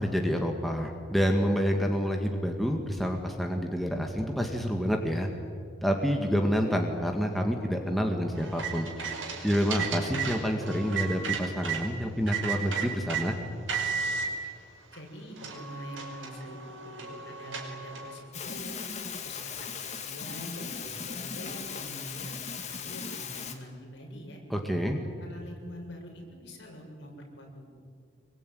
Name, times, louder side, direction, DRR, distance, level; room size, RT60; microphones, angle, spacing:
voice 1, 0.0-5.3 5.8-8.9 9.4-13.4 24.5-25.0, equal, ahead, 2 dB, 1.8 m, -28 dB
sound 1, 8.4-11.8 12.3-13.2 13.7-14.3 14.9-15.0 15.4-18.2, right 6 dB, 85° right, 5.5 m, -34 dB
voice 2, 14.9-18.8 19.2-24.4 25.2-27.8, equal, 65° left, 0 dB, 7.1 m, -44 dB
sound 2, 18.3-23.5, left 6 dB, 35° left, 2.2 m, -38 dB
25.5 x 23.0 x 9.4 m, 2.3 s
head